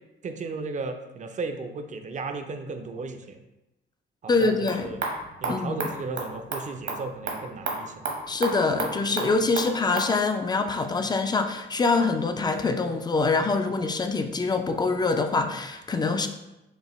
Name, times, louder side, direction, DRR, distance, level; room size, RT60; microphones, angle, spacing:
voice 1, 0.2-3.4 4.2-5.0 5.4-8.0, right 3 dB, 40° right, 6 dB, 0.5 m, -35 dB
voice 2, 4.3-4.9 5.5-5.9 8.3-16.3, left 3 dB, 20° left, 7 dB, 0.4 m, -25 dB
sound 1, 4.3-10.1, right 3 dB, 65° right, 1.0 m, -34 dB
5.5 x 2.2 x 3.0 m, 0.96 s
cardioid pair, 90°, 20 cm